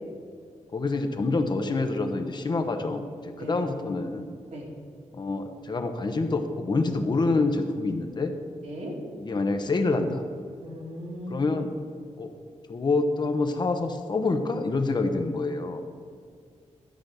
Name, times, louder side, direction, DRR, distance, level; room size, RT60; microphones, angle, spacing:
voice 1, 0.7-4.3 5.1-8.3 9.2-10.2 11.3-11.7 12.2-12.3 12.7-15.8, left 3 dB, 35° left, 6 dB, 0.9 m, -27 dB
voice 2, 10.6-11.5, equal, 75° right, -3 dB, 3.0 m, -37 dB
12.5 x 5.1 x 7.7 m, 2.2 s
wide cardioid pair, 145°, 12 cm